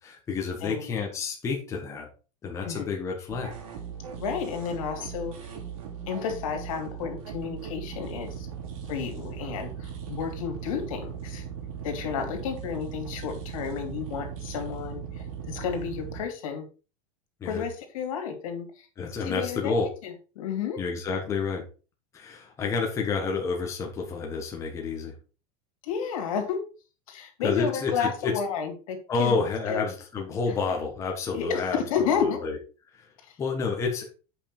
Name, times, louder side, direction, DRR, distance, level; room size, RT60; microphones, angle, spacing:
voice 1, 0.0-2.1 2.4-3.5 8.7-8.9 17.4-17.6 19.0-19.9 20.8-21.6 22.1-25.1 27.4-28.3 29.1-32.6 32.9-33.1 33.4-34.1, left 4 dB, 15° left, 0 dB, 1.3 m, -29 dB
voice 2, 0.6-0.9 2.6-2.9 4.2-5.3 6.1-8.5 8.9-11.4 11.8-16.7 17.4-18.9 19.2-19.7 20.0-20.8 25.8-26.6 27.1-29.4 29.7-29.8 31.3-32.5 33.2-33.4, left 7 dB, 75° left, 4 dB, 2.8 m, -31 dB
sound 1, 3.3-16.2, right 7 dB, 75° right, 3.1 m, -38 dB
8.3 x 5.5 x 4.4 m, 0.35 s
supercardioid pair, 170°, 18 cm